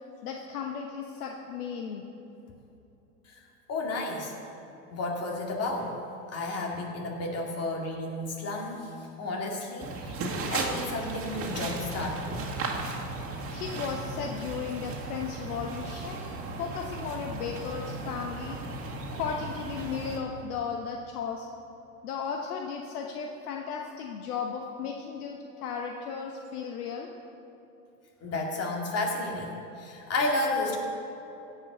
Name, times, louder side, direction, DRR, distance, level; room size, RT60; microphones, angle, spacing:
voice 1, 0.2-2.1 13.5-18.6 19.1-21.5 22.0-27.1, left 6 dB, 70° left, 1 dB, 1.1 m, -35 dB
voice 2, 3.7-4.3 4.9-5.9 6.3-8.9 9.2-10.2 10.5-12.5 28.2-30.8, left 2 dB, 30° left, 0 dB, 2.5 m, -32 dB
some steps outside, 9.8-20.2, right 3 dB, 30° right, 2.1 m, -36 dB
16.5 x 5.6 x 6.8 m, 2.9 s
hypercardioid pair, 95°, 47 cm